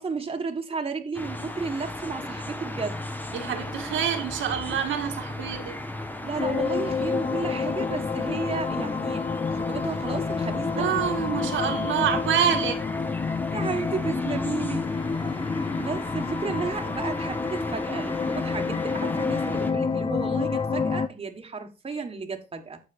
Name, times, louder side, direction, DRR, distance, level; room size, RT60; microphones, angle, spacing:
voice 1, 0.0-3.1 6.2-9.2 9.5-10.9 13.5-14.9 15.7-22.8, right 4 dB, 30° right, 1.4 m, -33 dB
sound 1, 1.1-19.7, left 1 dB, 10° left, 1.2 m, -35 dB
voice 2, 3.3-5.8 10.7-12.8, right 8 dB, 80° right, 1.7 m, -26 dB
sound 2, 6.4-21.1, left 5 dB, 25° left, 0.6 m, -29 dB
14.5 x 4.9 x 2.6 m
cardioid pair, 90°, 20 cm